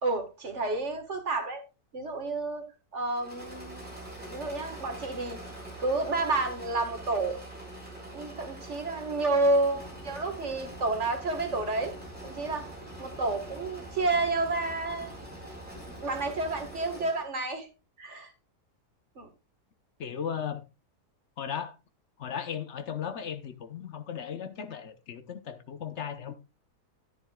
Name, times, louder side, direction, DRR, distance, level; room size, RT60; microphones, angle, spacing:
voice 1, 0.0-1.6 1.9-2.7 2.9-3.8 4.3-5.4 5.8-7.4 8.1-11.9 12.2-12.7 13.0-15.1 16.0-17.7 18.0-18.3 19.2-19.3, right 2 dB, 50° right, 1.9 m, -30 dB
Engine / Mechanisms, 3.1-17.3, right 1 dB, 5° right, 6.1 m, -44 dB
sound 1, 9.7-16.7, left 1 dB, 15° left, 2.3 m, -50 dB
voice 2, 20.0-20.6 21.4-21.7 22.2-26.3, left 8 dB, 50° left, 1.0 m, -36 dB
10.5 x 10.0 x 2.3 m
omnidirectional pair, 1.7 m